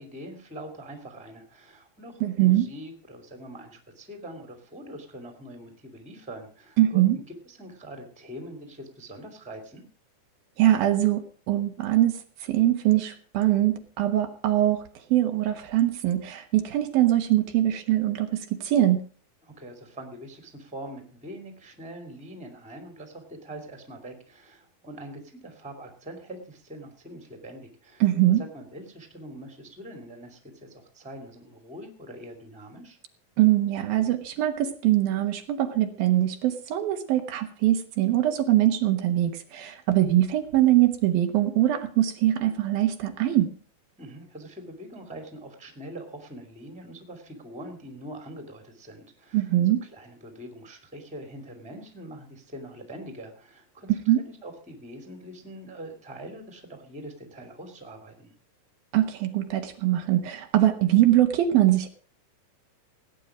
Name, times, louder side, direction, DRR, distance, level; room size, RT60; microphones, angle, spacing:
voice 1, 0.0-9.8 19.4-33.0 44.0-58.3, right 1 dB, ahead, 6 dB, 2.1 m, -43 dB
voice 2, 2.2-2.7 6.8-7.2 10.6-11.2 11.5-14.8 15.1-19.0 28.0-28.4 33.4-43.5 49.3-49.8 54.1-54.2 58.9-61.9, right 13 dB, 75° right, 6 dB, 3.0 m, -22 dB
17.5 x 9.6 x 5.0 m, 0.41 s
omnidirectional pair, 4.4 m